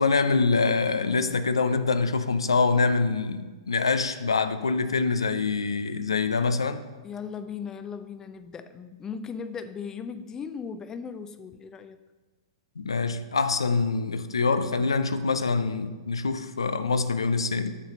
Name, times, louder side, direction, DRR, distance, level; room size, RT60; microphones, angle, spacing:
voice 1, 0.0-6.8 12.8-17.7, left 4 dB, 85° left, 0.5 m, -25 dB
voice 2, 7.0-12.0, left 6 dB, 20° left, 0.5 m, -37 dB
7.4 x 4.0 x 6.2 m
hypercardioid pair, 115°, 3 cm